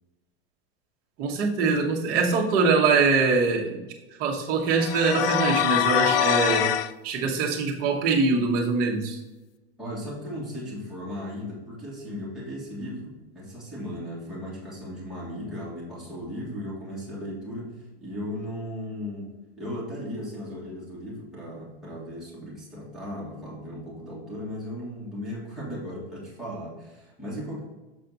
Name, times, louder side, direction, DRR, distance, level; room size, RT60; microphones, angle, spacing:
voice 1, 1.2-3.8 4.2-6.7 7.0-9.2, right 4 dB, 30° right, -1 dB, 1.1 m, -23 dB
sound 1, 4.7-6.9, left 10 dB, 65° left, 0.5 m, -24 dB
voice 2, 9.8-27.6, equal, ahead, -8 dB, 1.9 m, -36 dB
7.1 x 4.1 x 4.0 m, 1.1 s
supercardioid pair, 170°, 31 cm